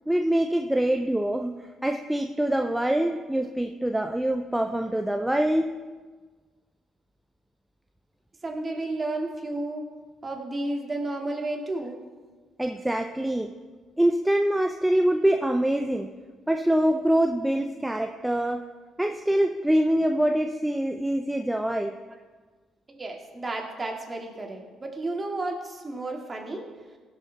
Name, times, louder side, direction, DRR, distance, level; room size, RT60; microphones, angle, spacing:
voice 1, 0.1-5.7 12.6-13.5 14.0-16.1 16.5-18.6 19.0-21.9, right 1 dB, 5° right, 5 dB, 0.5 m, -24 dB
voice 2, 8.4-9.9 10.2-12.0 22.9-26.6, right 2 dB, 30° right, 1 dB, 2.1 m, -32 dB
16.0 x 6.7 x 4.0 m, 1.4 s
cardioid pair, 80°, 0 cm